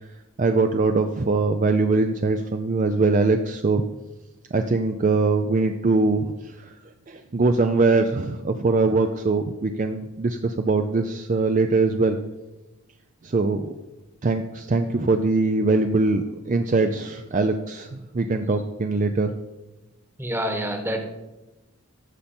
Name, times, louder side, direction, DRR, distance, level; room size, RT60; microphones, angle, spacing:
voice 1, 0.4-3.8 4.5-6.8 7.1-12.2 13.2-13.7 14.2-19.3, right 3 dB, 35° right, 7 dB, 0.4 m, -22 dB
voice 2, 20.2-21.0, equal, 10° right, 4 dB, 1.2 m, -27 dB
13.0 x 6.9 x 4.3 m, 1.0 s
head